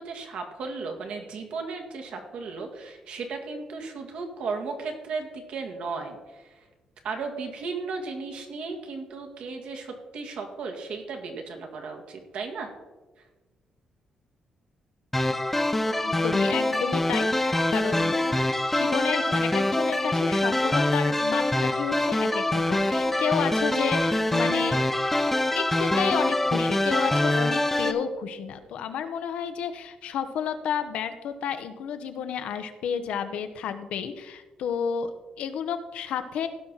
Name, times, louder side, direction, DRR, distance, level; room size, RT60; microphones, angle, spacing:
voice 1, 0.0-6.7 7.0-12.7, right 4 dB, 70° right, 3 dB, 1.8 m, -35 dB
sound 1, 15.1-27.9, left 1 dB, 10° left, 0.7 m, -24 dB
voice 2, 16.0-18.2 18.7-24.8 25.5-36.5, left 7 dB, 85° left, 9 dB, 0.9 m, -31 dB
16.5 x 6.0 x 4.0 m, 1.2 s
cardioid pair, 140°, 2 cm